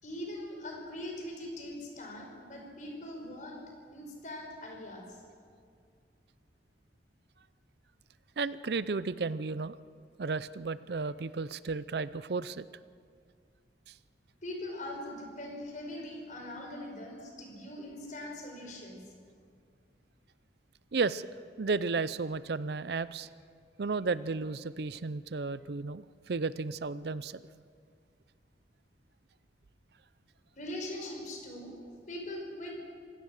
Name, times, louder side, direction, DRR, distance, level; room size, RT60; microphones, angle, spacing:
voice 1, 0.0-3.6 3.9-5.2 14.4-19.0 30.6-31.7 32.1-32.8, left 1 dB, 45° left, 1 dB, 5.2 m, -41 dB
voice 2, 8.4-9.7 10.2-12.6 20.9-21.3 21.6-23.3 23.8-27.4, right 4 dB, 60° right, 16 dB, 0.5 m, -33 dB
26.0 x 17.0 x 6.6 m, 2.2 s
head